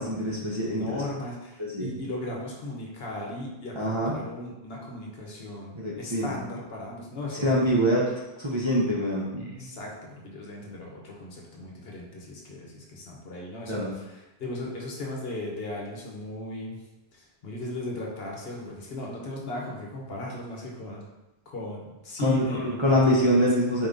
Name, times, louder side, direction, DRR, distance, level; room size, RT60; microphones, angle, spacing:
voice 1, 0.0-0.9 1.6-1.9 3.8-4.2 5.8-6.3 7.4-8.1 8.4-9.7 13.7-13.9 22.2-23.9, equal, 30° right, -6 dB, 0.6 m, -24 dB
voice 2, 0.7-7.5 9.4-16.8 17.1-21.1 21.5-23.5, left 2 dB, 65° left, -2 dB, 1.1 m, -37 dB
4.6 x 3.5 x 2.6 m, 1.0 s
omnidirectional pair, 1.1 m